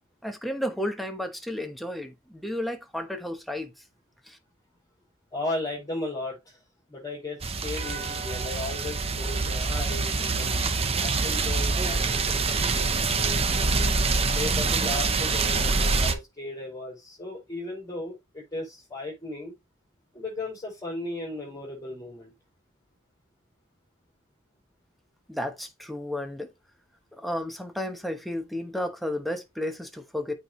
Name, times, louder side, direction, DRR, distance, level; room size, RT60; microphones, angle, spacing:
voice 1, 0.2-3.7 4.3-4.4 25.3-26.5 27.1-30.3, left 1 dB, ahead, 1.1 m, -32 dB
voice 2, 5.3-6.6 6.9-10.6 11.0-13.9 14.3-19.5 20.1-22.3, left 2 dB, 20° left, 5.0 m, -36 dB
sound 1, 7.4-16.1, right 4 dB, 30° right, 0.8 m, -25 dB
8.7 x 4.6 x 3.1 m
head